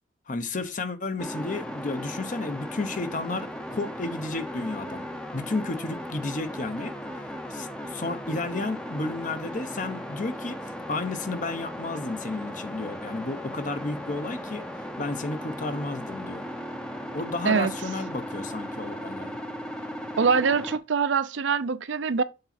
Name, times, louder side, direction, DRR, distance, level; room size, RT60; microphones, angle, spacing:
voice 1, 0.3-5.0 5.3-6.9 7.5-10.6 10.9-14.7 15.0-16.5 17.1-19.4, left 3 dB, 45° left, 0.7 m, -32 dB
sound 1, 1.2-20.8, equal, 5° left, 0.6 m, -37 dB
voice 2, 20.2-22.2, right 5 dB, 80° right, 0.5 m, -24 dB
6.7 x 4.0 x 4.2 m
head